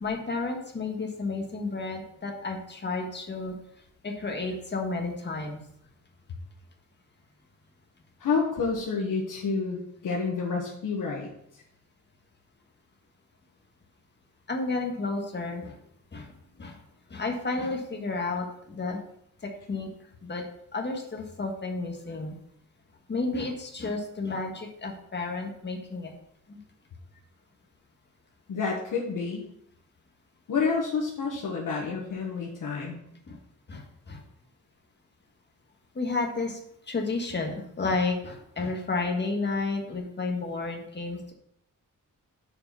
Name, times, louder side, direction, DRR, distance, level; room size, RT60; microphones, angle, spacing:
voice 1, 0.0-3.5 4.0-5.6 14.5-15.7 16.1-16.3 16.6-16.8 17.1-19.0 19.4-19.9 20.2-20.4 20.7-22.3 23.1-26.1 26.5-26.6 33.3-33.4 33.7-34.2 35.9-36.6 36.9-41.3, left 3 dB, 35° left, 2 dB, 1.5 m, -31 dB
voice 2, 8.2-11.3 28.5-29.4 30.5-33.0, left 5 dB, 85° left, -2 dB, 1.4 m, -29 dB
6.8 x 4.8 x 6.9 m, 0.73 s
wide cardioid pair, 150°, 31 cm